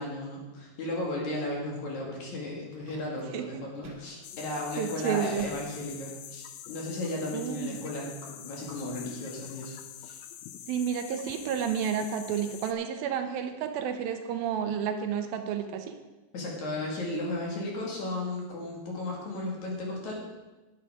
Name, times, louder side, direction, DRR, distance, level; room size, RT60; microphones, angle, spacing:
voice 1, 0.0-10.2 16.3-20.1, left 2 dB, 55° left, -2 dB, 3.2 m, -35 dB
sound 1, 2.3-4.1 4.5-4.6 5.4-6.6, right 2 dB, 55° right, 2.2 m, -50 dB
sound 2, 4.2-12.7, left 10 dB, 80° left, 2.3 m, -45 dB
voice 2, 4.8-5.5 7.3-7.8 10.7-16.0, right 8 dB, 85° right, 7 dB, 2.5 m, -31 dB
11.0 x 9.7 x 4.9 m, 1.1 s
omnidirectional pair, 4.3 m